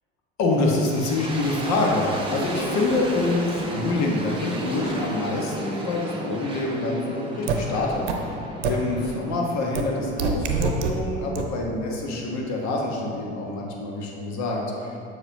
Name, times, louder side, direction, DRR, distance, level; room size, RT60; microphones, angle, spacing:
voice 1, 0.4-8.4 8.6-14.9, left 2 dB, 50° left, -1 dB, 1.4 m, -26 dB
sound 1, 0.6-11.5, right 1 dB, 15° right, 1.1 m, -34 dB
sound 2, 7.5-7.6 8.1-8.2 8.6-8.7 9.8-9.9 10.2-10.9 11.4-11.5, right 7 dB, 75° right, 0.7 m, -23 dB
7.2 x 6.5 x 2.7 m, 2.4 s
hypercardioid pair, 70°, 35 cm